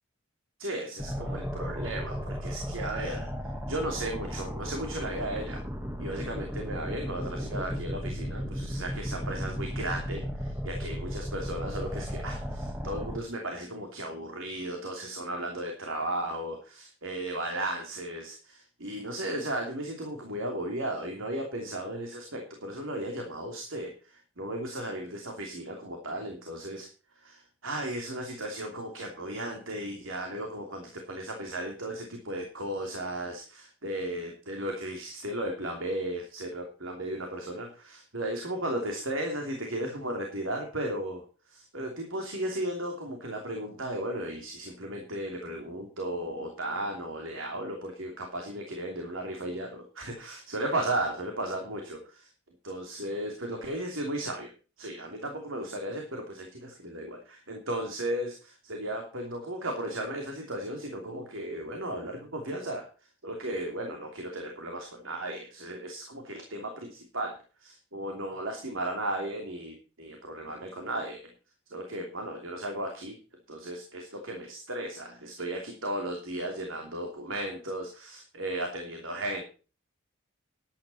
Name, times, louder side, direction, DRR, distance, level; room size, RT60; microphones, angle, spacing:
voice 1, 0.6-3.3 3.7-5.6 6.0-26.9 27.2-52.3 52.6-54.5 54.8-62.8 63.2-71.2 71.7-73.2 73.5-79.4, right 1 dB, 75° right, 2 dB, 3.0 m, -35 dB
sound 1, 1.0-13.2, equal, 10° right, 1.6 m, -35 dB
13.0 x 10.5 x 4.3 m, 0.36 s
head